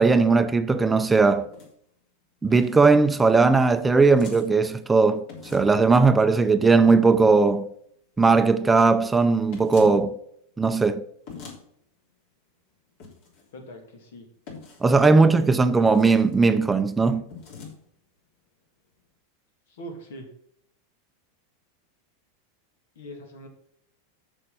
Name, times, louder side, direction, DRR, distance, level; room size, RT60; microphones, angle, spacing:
voice 1, 0.0-1.5 2.4-5.2 5.5-7.7 8.2-10.1 10.6-11.0 14.8-17.2, right 4 dB, 10° right, 0.5 m, -18 dB
sound 1, 1.4-1.7 2.5-2.9 4.1-4.5 5.3-5.8 9.5-10.0 11.3-11.6 13.0-13.4 14.5-14.9 15.8-16.3 17.3-17.7, left 5 dB, 60° left, 3.4 m, -42 dB
voice 2, 13.5-14.3 19.7-20.3 23.0-23.5, equal, 75° left, 2.5 m, -42 dB
6.8 x 6.5 x 5.7 m
hypercardioid pair, 120°, 0 cm